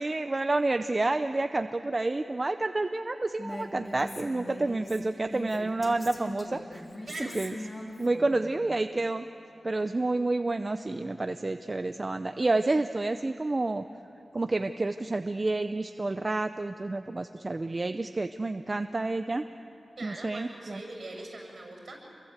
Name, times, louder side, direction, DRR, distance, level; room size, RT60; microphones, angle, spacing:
voice 1, 0.0-6.8 7.2-7.6 8.0-9.3 9.6-13.8 14.3-19.4 20.0-20.8, right 2 dB, 30° right, 8 dB, 0.6 m, -29 dB
Female speech woman speaking, 3.4-8.5, left 1 dB, 30° left, 3.5 m, -41 dB
voice 2, 7.1-7.4 20.0-22.0, right 2 dB, 55° right, 1 dB, 7.2 m, -41 dB
28.0 x 23.0 x 8.1 m, 2.9 s
wide cardioid pair, 115°, 0 cm